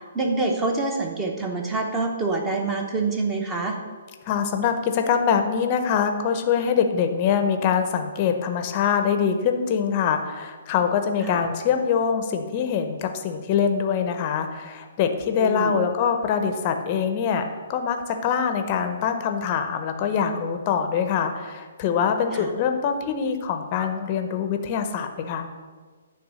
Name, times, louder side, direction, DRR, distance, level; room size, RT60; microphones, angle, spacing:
voice 1, 0.1-3.8 11.2-11.4 15.4-15.8 22.3-22.5, right 3 dB, 10° right, 2 dB, 0.8 m, -26 dB
voice 2, 4.3-25.5, left 7 dB, 25° left, 7 dB, 0.6 m, -24 dB
9.3 x 3.5 x 6.2 m, 1.5 s
hypercardioid pair, 165°, 0 cm